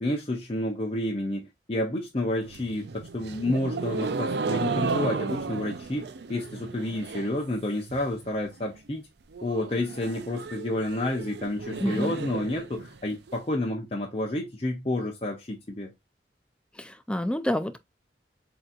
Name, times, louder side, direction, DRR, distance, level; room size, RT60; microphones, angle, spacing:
voice 1, 0.0-9.0 9.4-15.9, left 1 dB, 35° left, 0.7 m, -30 dB
sound 1, 2.4-7.5 7.7-8.3 8.6-8.7 8.9-9.0 9.3-13.3, right 4 dB, 70° right, 0.5 m, -34 dB
voice 2, 11.8-12.1 16.8-17.8, left 1 dB, 5° left, 0.4 m, -28 dB
7.7 x 2.9 x 2.4 m
head